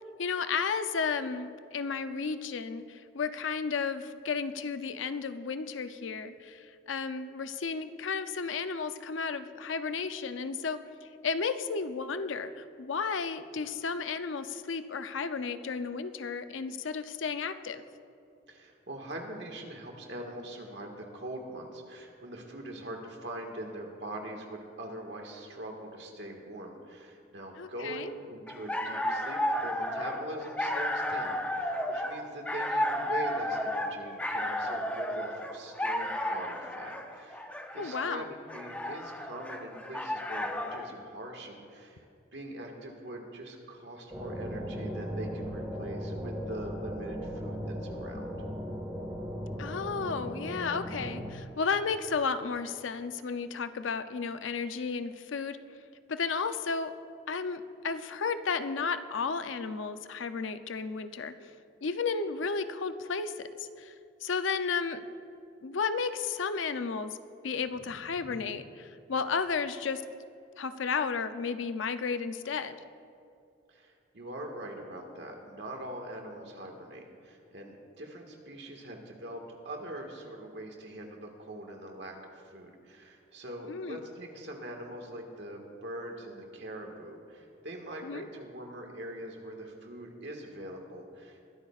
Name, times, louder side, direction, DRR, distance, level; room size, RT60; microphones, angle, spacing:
voice 1, 0.2-10.8 11.2-17.8 27.6-28.1 37.8-38.3 49.6-55.6 56.1-56.9 57.3-61.3 61.8-63.5 63.8-63.9 64.2-65.0 65.6-67.2 67.4-70.0 70.6-72.7 83.7-84.0 88.0-88.3, left 5 dB, 85° left, 10 dB, 0.6 m, -33 dB
voice 2, 18.5-37.5 37.7-42.0 42.3-48.3 67.9-68.4 73.7-91.5, right 1 dB, 65° right, 1 dB, 1.7 m, -43 dB
sound 1, 28.5-40.9, left 1 dB, 5° left, 0.5 m, -33 dB
sound 2, 44.1-51.3, equal, 10° right, 1.6 m, -37 dB
21.5 x 13.0 x 2.4 m, 2.5 s
head